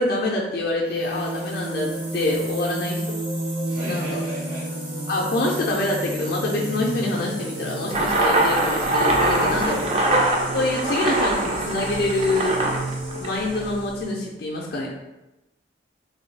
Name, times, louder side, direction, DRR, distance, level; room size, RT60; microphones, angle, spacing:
voice 1, 0.0-3.2 3.8-4.2 5.1-9.8 10.5-12.6 13.1-14.9, left 2 dB, 50° left, -2 dB, 0.4 m, -26 dB
sound 1, 0.8-14.3, right 1 dB, 85° right, 1.2 m, -31 dB
voice 2, 3.8-4.7 9.5-10.3, right 1 dB, 60° right, -8 dB, 0.9 m, -36 dB
sound 2, 7.9-13.8, right 1 dB, 30° right, 0.4 m, -23 dB
3.0 x 2.3 x 3.2 m, 0.99 s
head